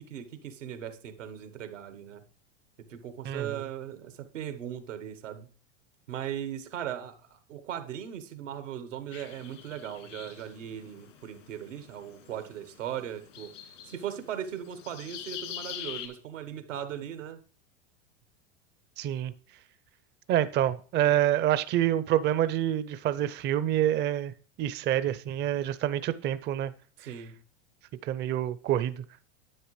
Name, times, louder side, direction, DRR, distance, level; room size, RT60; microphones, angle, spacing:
voice 1, 0.0-2.2 2.9-5.5 6.1-13.5 13.8-17.4 27.0-27.4, right 10 dB, 90° right, 1.3 m, -38 dB
sound 1, 9.1-16.1, left 10 dB, 80° left, 2.4 m, -45 dB
voice 2, 19.0-19.3 20.3-24.3 24.6-26.7 28.0-29.0, right 12 dB, 30° right, 0.5 m, -27 dB
10.5 x 7.7 x 3.2 m
hypercardioid pair, 105°, 36 cm